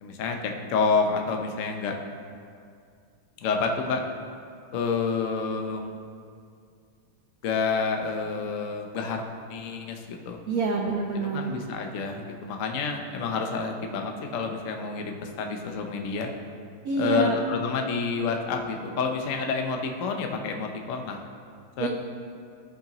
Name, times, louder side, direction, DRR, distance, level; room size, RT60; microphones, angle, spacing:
voice 1, 0.0-2.0 3.4-4.0 4.7-5.9 7.4-10.4 11.3-16.3 16.9-21.2 21.8-21.9, left 4 dB, 65° left, 3 dB, 0.8 m, -29 dB
voice 2, 10.5-11.5 16.8-17.4 21.8-21.9, right 2 dB, 85° right, 1 dB, 0.8 m, -26 dB
14.5 x 5.7 x 3.0 m, 2.3 s
omnidirectional pair, 2.4 m